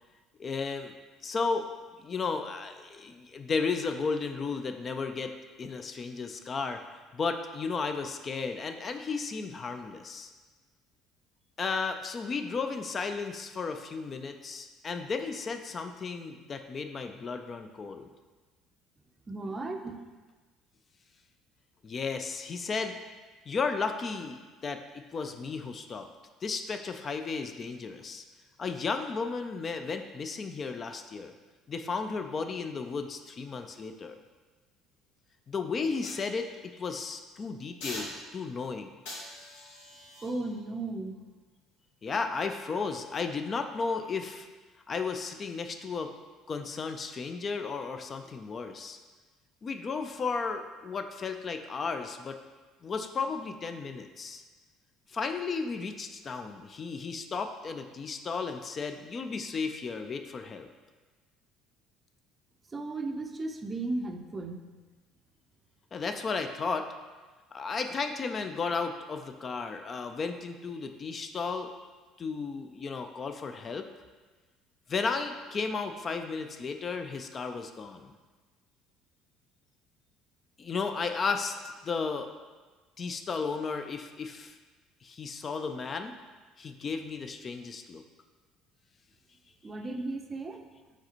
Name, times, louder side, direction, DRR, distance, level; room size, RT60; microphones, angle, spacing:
voice 1, 0.4-1.0 1.2-1.7 2.0-10.3 11.6-18.1 21.8-23.0 23.5-26.1 26.4-28.2 28.6-31.3 31.7-34.2 35.5-38.9 42.0-44.5 44.9-46.1 46.5-49.0 49.6-52.4 52.8-54.4 55.1-60.7 65.9-66.9 67.5-71.8 72.2-73.9 74.9-78.1 80.6-81.6 81.8-82.3 83.0-84.5 85.0-86.2 86.6-88.0, left 4 dB, 40° left, 7 dB, 0.3 m, -34 dB
voice 2, 19.3-20.0 40.2-41.2 62.7-64.6 89.6-90.6, right 2 dB, 30° right, 5 dB, 0.4 m, -35 dB
sound 1, 36.0-37.0 37.8-38.6 39.1-42.3 42.8-43.0, left 1 dB, 80° left, 1.0 m, -46 dB
4.7 x 3.4 x 3.0 m, 1.3 s
hypercardioid pair, 70°, 0 cm